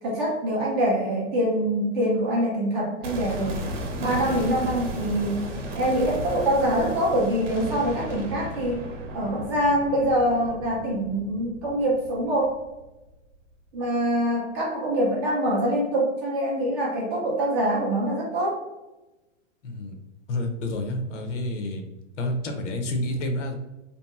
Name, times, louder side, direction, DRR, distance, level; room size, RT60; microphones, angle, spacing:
voice 1, 0.0-3.6 4.0-5.4 5.7-8.9 9.1-12.6 13.7-18.6, right 1 dB, 20° right, -4 dB, 0.4 m, -24 dB
sound 1, 3.0-13.0 13.3-13.4, right 1 dB, 75° right, 0.8 m, -34 dB
voice 2, 19.6-20.0 20.3-21.9 22.2-23.5, left 1 dB, 70° left, 4 dB, 0.7 m, -29 dB
2.8 x 2.5 x 2.3 m, 1.0 s
hypercardioid pair, 145°, 37 cm